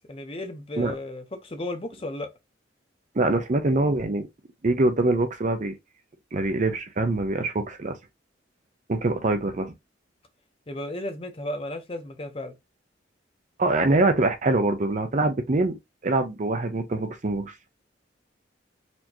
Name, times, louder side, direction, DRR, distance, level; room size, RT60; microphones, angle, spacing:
voice 1, 0.1-2.3 10.7-12.5, left 1 dB, 30° left, 0.8 m, -34 dB
voice 2, 3.1-4.3 4.6-5.7 6.3-8.0 8.9-9.7 13.6-15.8 16.0-17.5, right 2 dB, 40° right, 0.6 m, -24 dB
4.3 x 2.8 x 2.8 m
head